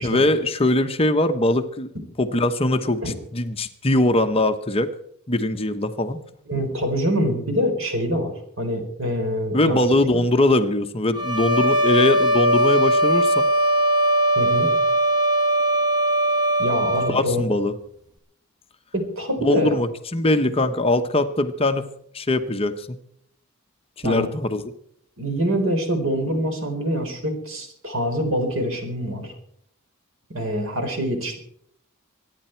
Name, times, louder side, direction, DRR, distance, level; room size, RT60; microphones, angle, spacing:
voice 1, 0.0-1.9 2.2-4.9 5.3-6.2 9.5-13.5 17.1-17.7 19.4-21.8 22.1-23.0 24.0-24.6, left 1 dB, 25° left, 8 dB, 0.9 m, -21 dB
voice 2, 6.5-10.2 14.4-14.7 16.6-17.5 18.9-19.8 20.4-20.7 24.0-24.3 25.2-29.3 30.3-31.4, equal, 65° right, 5 dB, 4.0 m, -25 dB
sound 1, 11.2-17.2, right 1 dB, 20° right, 1.7 m, -20 dB
24.5 x 10.0 x 4.5 m, 0.68 s
head